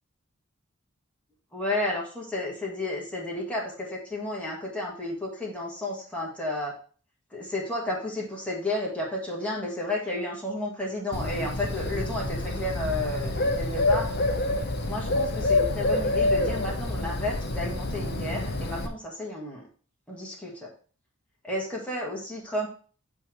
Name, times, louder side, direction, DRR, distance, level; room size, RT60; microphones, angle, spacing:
voice 1, 1.5-6.8 7.3-14.1 14.8-19.6 20.1-20.7 21.4-22.7, left 1 dB, 5° left, -4 dB, 1.8 m, -32 dB
Bird, 11.1-18.9, left 2 dB, 55° left, 0.9 m, -27 dB
8.4 x 3.5 x 4.5 m, 0.40 s
head